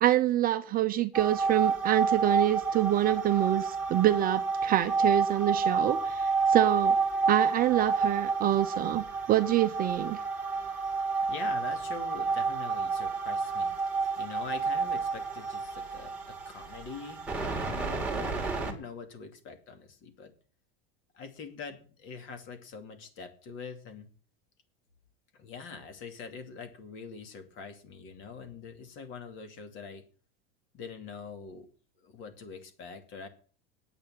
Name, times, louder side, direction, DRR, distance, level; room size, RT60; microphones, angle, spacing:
voice 1, 0.0-7.0 7.3-10.2, right 13 dB, 30° right, 0.7 m, -26 dB
sound 1, 1.1-18.7, right 4 dB, 5° right, 2.7 m, -30 dB
voice 2, 11.3-17.3 17.6-20.3 21.1-24.1 25.3-30.0 30.7-31.7 32.0-33.3, left 5 dB, 40° left, 2.6 m, -44 dB
9.2 x 8.6 x 9.0 m
supercardioid pair, 145°, 31 cm